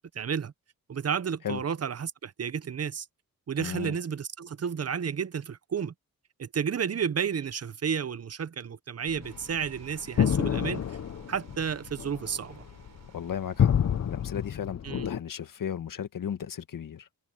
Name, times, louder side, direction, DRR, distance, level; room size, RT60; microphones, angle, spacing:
voice 1, 0.1-0.5 0.9-3.0 3.5-5.9 6.4-10.9 11.3-12.6 14.8-15.1, right 7 dB, 45° right, 0.9 m, -31 dB
voice 2, 3.6-4.0 13.1-13.8 14.0-17.1, left 8 dB, 65° left, 1.7 m, -35 dB
sound 1, 9.1-15.2, left 8 dB, 50° left, 0.8 m, -28 dB
sound 2, 9.2-14.5, right 7 dB, 65° right, 4.2 m, -55 dB
cardioid pair, 75°, 34 cm